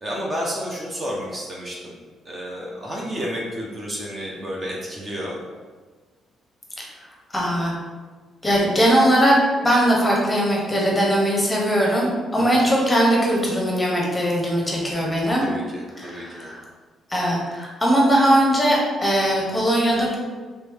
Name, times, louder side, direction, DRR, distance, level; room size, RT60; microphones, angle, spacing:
voice 1, 0.0-1.9 2.3-5.4 12.4-12.8 15.4-16.5, equal, 30° right, -3 dB, 0.8 m, -31 dB
voice 2, 7.3-7.7 8.4-15.5 16.0-16.6 17.1-20.2, equal, 15° left, -3 dB, 1.0 m, -20 dB
3.2 x 3.0 x 3.4 m, 1.4 s
cardioid pair, 90°, 0 cm